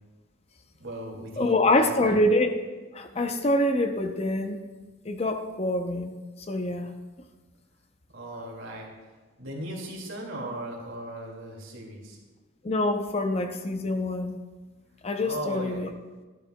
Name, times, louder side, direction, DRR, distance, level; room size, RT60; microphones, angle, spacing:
voice 1, 0.8-2.2 8.1-8.9 9.4-12.2 15.2-15.9, right 1 dB, 80° right, -1 dB, 2.1 m, -37 dB
voice 2, 1.4-2.7 2.9-4.6 5.0-6.1 6.5-6.9 12.6-14.4 15.0-15.9, left 1 dB, 30° left, 7 dB, 0.5 m, -25 dB
12.0 x 10.5 x 2.2 m, 1.3 s
head